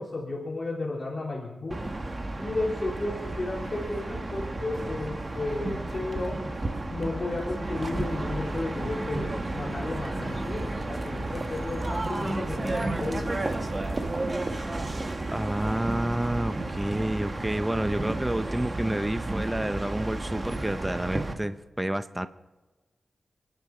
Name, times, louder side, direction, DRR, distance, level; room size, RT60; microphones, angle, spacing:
voice 1, 0.0-1.8 2.4-6.4 6.9-13.3, left 2 dB, 40° left, -4 dB, 3.3 m, -33 dB
sound 1, 1.7-21.3, right 2 dB, 30° right, 1.4 m, -32 dB
voice 2, 15.3-22.3, right 1 dB, 10° right, 10 dB, 0.5 m, -29 dB
29.5 x 10.5 x 4.3 m, 1.2 s
wide cardioid pair, 125°, 0 cm